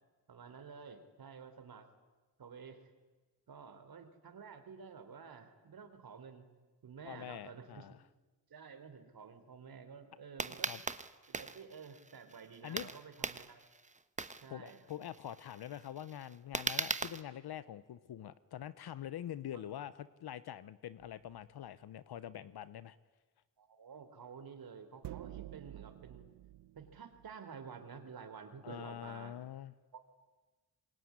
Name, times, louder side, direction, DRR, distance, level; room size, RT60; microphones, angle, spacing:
voice 1, 0.3-1.9 2.4-2.9 3.5-6.5 6.8-7.9 8.5-10.7 11.3-13.6 14.4-14.8 19.5-19.6 23.6-26.3 26.7-29.4 29.9-30.1, right 6 dB, 60° right, 8 dB, 3.8 m, -51 dB
voice 2, 7.0-8.0 10.6-10.8 12.6-12.9 14.5-23.0 28.6-29.7, left 11 dB, 65° left, 16 dB, 1.0 m, -45 dB
sound 1, 10.4-17.2, right 3 dB, 20° right, 1.2 m, -39 dB
sound 2, 21.0-21.4 25.0-27.4, right 14 dB, 85° right, 0.9 m, -49 dB
26.5 x 22.0 x 9.7 m, 1.3 s
cardioid pair, 80°, 40 cm